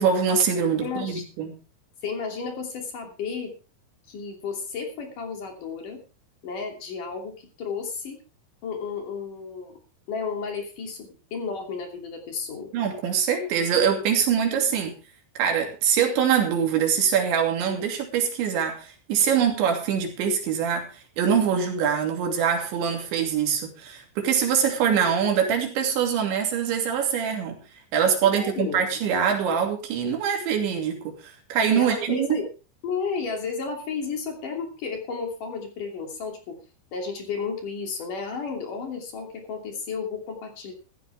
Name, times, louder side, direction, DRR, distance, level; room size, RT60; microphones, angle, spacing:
voice 1, 0.0-1.6 12.7-15.0 15.4-27.6 27.9-32.3, right 7 dB, 85° right, 3 dB, 5.0 m, -24 dB
voice 2, 0.8-1.2 2.0-3.5 4.1-6.0 6.4-8.2 8.6-9.8 10.1-12.7 28.2-28.9 31.7-32.5 32.8-36.6 36.9-40.7, left 5 dB, 50° left, 3 dB, 4.2 m, -32 dB
15.0 x 13.5 x 3.5 m, 0.33 s
omnidirectional pair, 5.1 m